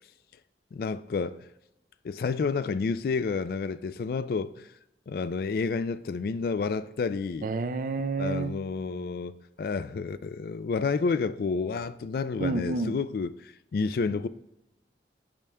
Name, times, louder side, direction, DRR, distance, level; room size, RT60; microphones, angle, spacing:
voice 1, 0.7-1.4 2.0-4.7 5.1-7.5 8.2-9.3 9.6-13.3 13.7-14.3, left 4 dB, 55° left, 0.3 m, -30 dB
voice 2, 7.4-8.6 12.4-13.0, right 3 dB, 50° right, 0.4 m, -29 dB
8.7 x 6.2 x 2.2 m
head